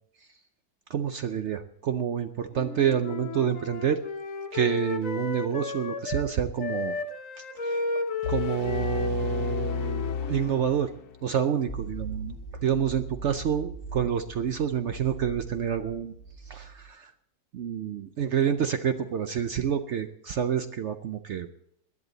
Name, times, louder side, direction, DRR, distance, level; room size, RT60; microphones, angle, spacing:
voice 1, 0.9-4.0 4.5-7.0 7.6-7.8 8.3-10.9 11.2-12.4 12.6-16.1 16.5-17.1 17.5-21.5, right 8 dB, 75° right, 9 dB, 0.6 m, -28 dB
Wind instrument woodwind instrument, 2.5-6.3 6.6-10.7, left 4 dB, 50° left, 1.5 m, -34 dB
sound 1, 8.2-11.3, left 7 dB, 75° left, 1.6 m, -32 dB
sound 2, 11.7-16.8, right 4 dB, 10° left, 2.8 m, -40 dB
19.0 x 11.0 x 4.0 m, 0.71 s
omnidirectional pair, 1.9 m